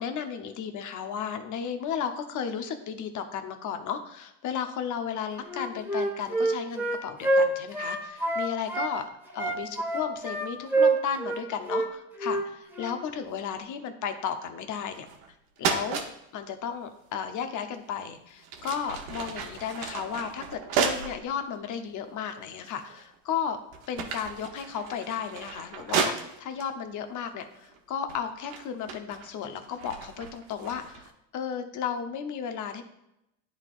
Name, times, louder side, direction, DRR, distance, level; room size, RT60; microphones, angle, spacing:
voice 1, 0.0-9.1 9.3-15.1 15.6-16.0 16.3-23.6 23.9-32.8, left 7 dB, 45° left, 7 dB, 0.8 m, -34 dB
Wind instrument woodwind instrument, 5.4-8.9 9.3-11.4 11.7-11.9 12.2-12.4 12.7-13.0, right 2 dB, 5° right, 1.2 m, -26 dB
sound 1, 14.9-15.3 15.6-16.1 17.7-17.9 18.4-21.2 21.8-21.9 22.7-23.2 23.5-26.7 27.5-27.8 28.1-31.1, right 6 dB, 75° right, 1.0 m, -33 dB
10.0 x 4.1 x 2.4 m, 0.85 s
supercardioid pair, 85°, 42 cm